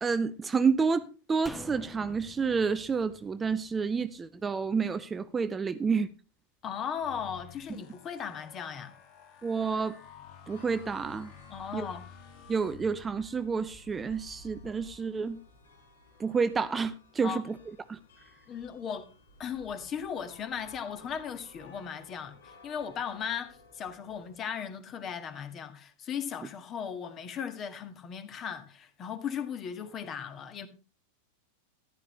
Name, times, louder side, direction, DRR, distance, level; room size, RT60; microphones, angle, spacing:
voice 1, 0.0-6.1 7.7-7.8 9.4-10.0 10.5-11.3 11.7-11.9 12.5-15.4 16.2-17.6 17.9-18.0, right 5 dB, 15° right, 0.6 m, -29 dB
sound 1, 1.5-4.8 5.1-5.2, equal, ahead, 1.2 m, -48 dB
voice 2, 6.6-8.9 11.5-12.0 17.2-17.4 18.5-19.1 19.4-30.7, left 7 dB, 30° left, 1.8 m, -37 dB
sound 2, 6.9-13.4, left 8 dB, 45° left, 2.7 m, -51 dB
sound 3, 10.5-24.4, left 1 dB, 65° left, 4.3 m, -56 dB
14.5 x 11.5 x 3.2 m
figure-of-eight pair, 90°, 0 cm